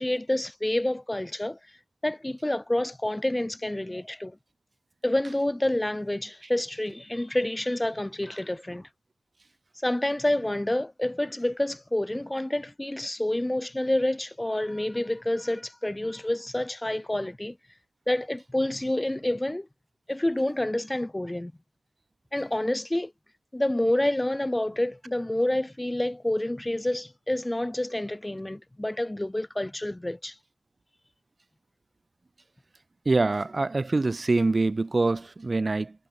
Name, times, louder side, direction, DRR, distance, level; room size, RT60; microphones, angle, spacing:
voice 1, 0.0-1.6 2.0-4.3 5.0-8.9 9.8-17.6 18.1-19.7 20.1-21.5 22.3-23.1 23.5-30.3, left 1 dB, 15° left, 5.1 m, -28 dB
voice 2, 33.1-35.9, right 3 dB, 45° right, 3.9 m, -24 dB
cardioid pair, 50°, 0 cm